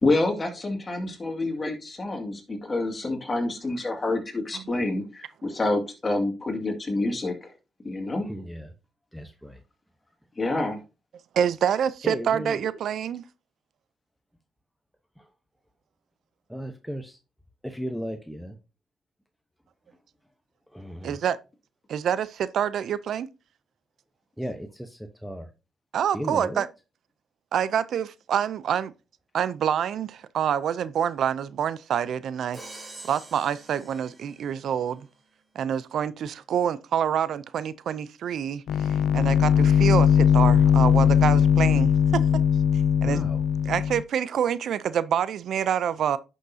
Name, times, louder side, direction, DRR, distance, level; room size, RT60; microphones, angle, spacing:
voice 1, 0.0-7.5 7.8-8.2 10.4-10.8, left 2 dB, 30° left, 2.2 m, -27 dB
voice 2, 8.2-8.7 9.1-9.6 12.0-12.8 15.2-15.3 16.5-17.2 17.6-18.6 20.7-21.2 24.4-25.5 26.1-26.6 43.0-43.4, equal, ahead, 0.9 m, -35 dB
voice 3, 11.3-13.2 21.0-21.4 21.9-23.3 25.9-26.7 27.5-28.9 29.3-32.6 33.0-35.0 35.6-42.2 43.0-43.2 43.7-46.2, right 9 dB, 65° right, 0.5 m, -27 dB
Crash cymbal, 32.5-34.7, right 2 dB, 25° right, 2.7 m, -45 dB
sound 1, 38.7-44.0, left 8 dB, 70° left, 0.5 m, -20 dB
10.5 x 6.4 x 2.7 m
cardioid pair, 90°, 0 cm